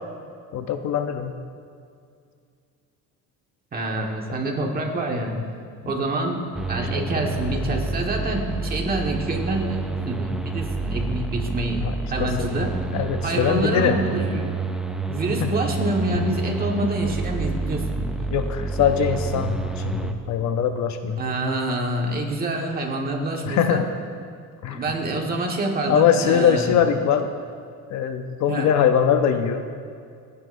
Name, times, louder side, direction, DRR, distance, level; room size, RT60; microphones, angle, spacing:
voice 1, 0.5-1.3 6.9-7.0 11.8-11.9 12.2-12.5 12.9-14.0 15.4-15.5 16.1-16.2 18.3-21.2 23.4-23.8 24.6-24.8 25.8-27.3 27.9-29.6, left 8 dB, 50° left, 7 dB, 0.7 m, -22 dB
voice 2, 3.7-5.4 5.8-11.8 12.1-12.7 13.2-14.5 15.1-18.1 21.2-23.8 24.7-26.7 28.5-28.7, right 2 dB, 25° right, 1 dB, 1.6 m, -26 dB
sound 1, 6.5-20.1, right 3 dB, ahead, 0.4 m, -28 dB
28.5 x 9.7 x 2.7 m, 2.3 s
cardioid pair, 160°, 35 cm